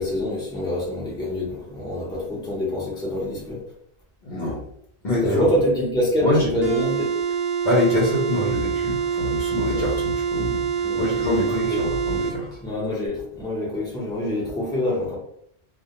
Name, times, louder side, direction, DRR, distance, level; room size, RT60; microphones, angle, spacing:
voice 1, 0.0-3.6 5.2-7.1 9.7-9.9 10.8-11.8 12.6-15.2, left 1 dB, 5° left, -5 dB, 0.6 m, -26 dB
voice 2, 4.2-4.6 5.0-5.5 6.2-6.5 7.6-12.6, left 1 dB, 50° left, -5 dB, 0.8 m, -25 dB
sound 1, 6.6-12.4, right 7 dB, 50° right, 0.5 m, -25 dB
2.3 x 2.1 x 2.8 m, 0.70 s
omnidirectional pair, 1.1 m